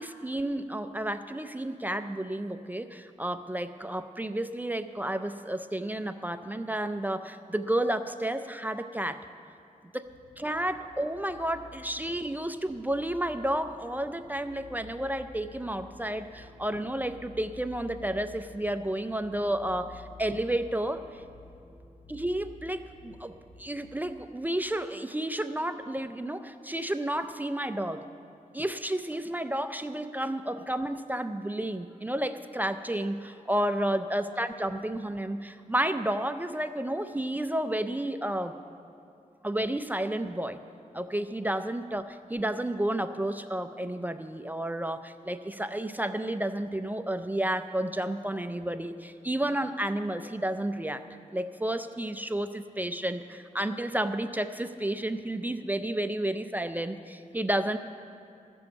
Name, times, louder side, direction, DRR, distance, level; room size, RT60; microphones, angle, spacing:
voice 1, 0.0-9.2 9.9-10.0 10.4-21.2 22.1-23.3 23.6-28.0 28.5-38.5 39.4-40.6 40.9-51.0 51.3-57.8, right 1 dB, 10° right, 9 dB, 0.4 m, -31 dB
sound 1, 10.1-24.1, left 2 dB, 50° left, 2.4 m, -52 dB
14.0 x 7.0 x 8.1 m, 2.5 s
wide cardioid pair, 135°, 14 cm